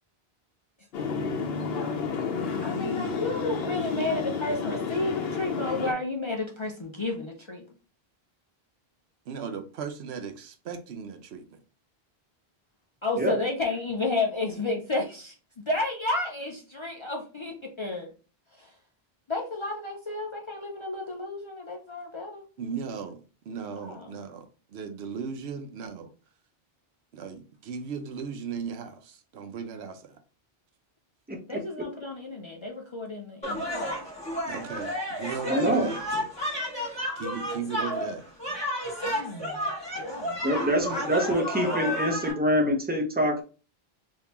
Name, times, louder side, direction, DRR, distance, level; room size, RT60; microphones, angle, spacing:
sound 1, 0.9-5.9, left 5 dB, 75° left, 0.9 m, -31 dB
voice 1, 2.6-7.7 13.0-18.1 18.6-18.7 19.3-22.4 23.8-24.2 31.5-34.0 39.0-39.6 39.9-40.9, left 2 dB, 40° left, 0.4 m, -32 dB
voice 2, 9.3-11.6 22.6-26.1 27.1-30.2 34.5-36.3 37.2-38.3 39.1-39.2, right 6 dB, 85° right, 0.9 m, -37 dB
voice 3, 31.3-31.6 35.5-35.9 40.4-43.4, equal, 10° right, 0.6 m, -25 dB
sound 2, 33.4-42.3, equal, 5° left, 1.3 m, -32 dB
3.5 x 2.7 x 2.8 m
omnidirectional pair, 1.0 m